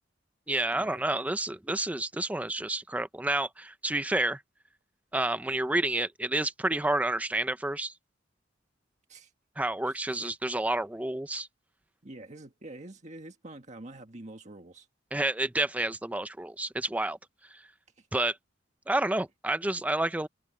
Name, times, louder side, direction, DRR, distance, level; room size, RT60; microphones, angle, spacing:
voice 1, 0.5-4.4 5.1-7.9 9.6-11.5 15.1-17.2 18.1-18.4 18.9-20.3, right 2 dB, 10° right, 0.5 m, -29 dB
voice 2, 9.8-10.3 12.0-14.9 18.0-18.1, right 2 dB, 40° right, 1.7 m, -46 dB
head